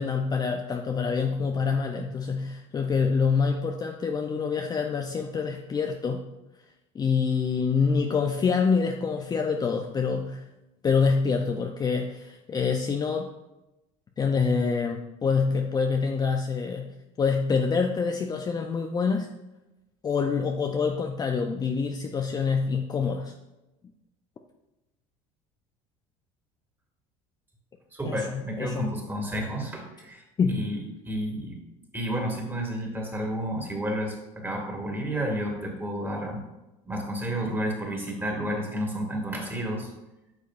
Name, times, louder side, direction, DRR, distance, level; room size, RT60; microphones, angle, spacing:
voice 1, 0.0-6.2 6.9-10.4 10.8-13.3 14.2-19.3 20.0-23.3 28.0-28.9 30.4-30.6, left 5 dB, 25° left, 3 dB, 0.5 m, -26 dB
voice 2, 27.9-31.6 31.9-36.4 36.8-39.9, equal, 15° right, 1 dB, 2.1 m, -31 dB
9.3 x 6.4 x 2.5 m, 1.0 s
supercardioid pair, 100°, 16 cm